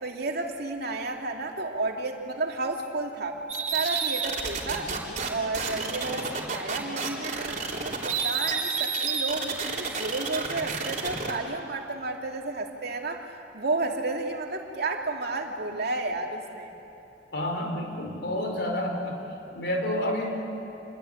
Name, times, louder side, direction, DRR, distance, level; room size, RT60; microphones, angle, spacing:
voice 1, 0.0-3.4 3.7-4.9 5.3-13.3 13.5-16.7, right 2 dB, 60° right, 2 dB, 2.6 m, -32 dB
sound 1, 3.5-5.3 5.5-11.4, right 5 dB, 45° right, 3.8 m, -29 dB
voice 2, 17.3-19.2 19.5-20.5, left 1 dB, 70° left, 3 dB, 4.6 m, -29 dB
28.0 x 22.5 x 9.1 m, 2.9 s
head